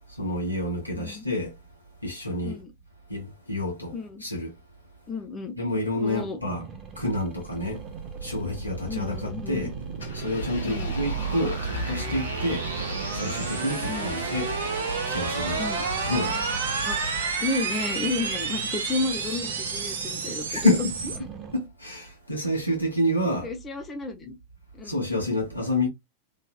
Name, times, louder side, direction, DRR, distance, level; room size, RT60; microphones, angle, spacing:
voice 1, 0.1-1.5 2.0-2.6 3.1-3.9 4.2-4.5 5.6-6.6 7.0-7.8 8.2-9.8 10.1-12.7 13.1-14.5 15.1-15.6 16.1-16.4 20.5-20.9 21.5-23.5 24.8-25.9, left 1 dB, 90° left, 1.3 m, -28 dB
voice 2, 1.0-1.3 2.4-2.7 3.9-4.3 5.1-5.6 6.0-6.4 8.9-9.7 10.6-10.9 13.9-14.2 15.6-15.9 16.8-17.0 17.4-20.6 23.4-24.3 24.7-25.0, left 3 dB, 20° left, 0.6 m, -32 dB
sound 1, 6.4-21.6, right 5 dB, 30° right, 0.8 m, -42 dB
sound 2, 7.5-21.2, right 5 dB, 65° right, 0.7 m, -31 dB
Engine, 10.0-17.7, left 1 dB, 70° left, 1.0 m, -37 dB
3.1 x 2.7 x 2.2 m
figure-of-eight pair, 90°, 0 cm